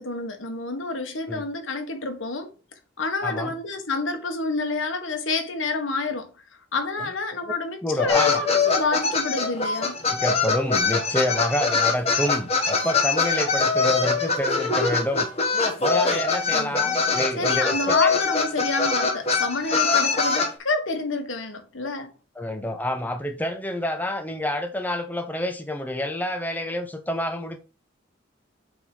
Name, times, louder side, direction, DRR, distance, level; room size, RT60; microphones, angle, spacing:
voice 1, 0.0-2.5 3.0-6.4 6.7-10.0 16.5-16.9 17.4-22.1, left 3 dB, 90° left, 1.5 m, -28 dB
voice 2, 3.2-3.5 7.4-7.5 7.8-8.4 10.1-15.3 15.8-18.1 22.4-27.6, left 1 dB, 10° left, 0.8 m, -28 dB
sound 1, 8.1-20.5, left 4 dB, 30° left, 1.4 m, -23 dB
8.0 x 3.7 x 4.9 m
head